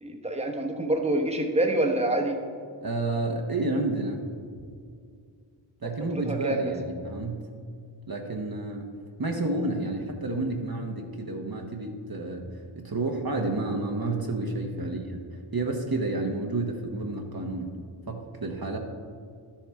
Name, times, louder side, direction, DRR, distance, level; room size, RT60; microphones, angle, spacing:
voice 1, 0.0-2.4 6.2-6.7 14.8-14.9, right 1 dB, 15° right, 1 dB, 1.1 m, -26 dB
voice 2, 2.8-4.3 5.8-7.5 8.1-8.9 9.2-17.7 18.1-18.8, right 2 dB, 50° right, 2 dB, 1.0 m, -30 dB
12.5 x 7.3 x 3.5 m, 2.2 s
wide cardioid pair, 40°, 48 cm